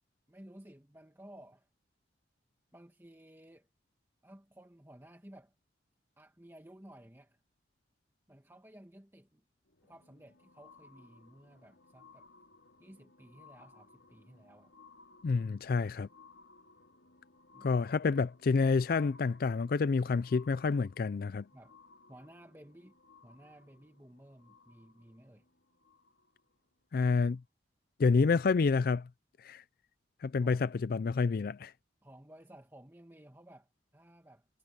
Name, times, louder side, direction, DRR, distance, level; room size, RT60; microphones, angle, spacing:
voice 1, 0.3-1.7 2.7-3.7 4.2-5.5 6.2-7.4 8.3-9.4 9.8-12.3 12.8-14.7 17.5-17.7 21.5-21.8 22.1-23.0 23.2-25.5 30.4-30.7 32.0-34.5, right 1 dB, 15° right, 2.0 m, -55 dB
sound 1, 9.7-26.5 27.3-27.4, left 3 dB, 90° left, 5.1 m, -61 dB
voice 2, 15.2-16.1 17.6-21.4 26.9-27.4 28.0-29.1 29.4-29.6 30.2-31.7, left 4 dB, 55° left, 0.4 m, -28 dB
head